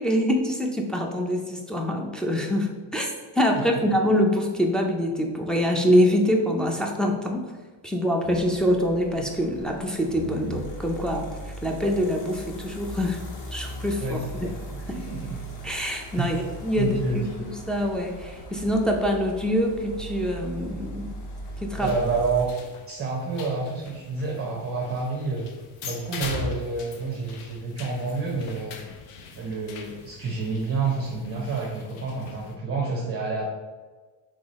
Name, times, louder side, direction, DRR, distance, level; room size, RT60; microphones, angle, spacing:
voice 1, 0.0-3.1 3.4-7.5 7.8-11.3 11.6-13.2 13.5-14.2 14.7-15.0 15.6-16.4 16.6-21.1 21.6-21.9, equal, ahead, 0 dB, 0.4 m, -25 dB
sound 1, 8.2-22.5, right 1 dB, 40° left, 0.8 m, -39 dB
voice 2, 14.0-14.6 14.9-15.4 16.2-16.4 16.8-17.2 21.8-22.5 22.9-25.5 25.8-28.8 29.3-33.5, right 4 dB, 25° right, -3 dB, 0.8 m, -29 dB
sound 2, 21.8-32.5, left 4 dB, 80° left, 0.8 m, -41 dB
3.7 x 3.2 x 4.0 m, 1.3 s
cardioid pair, 110°, 50 cm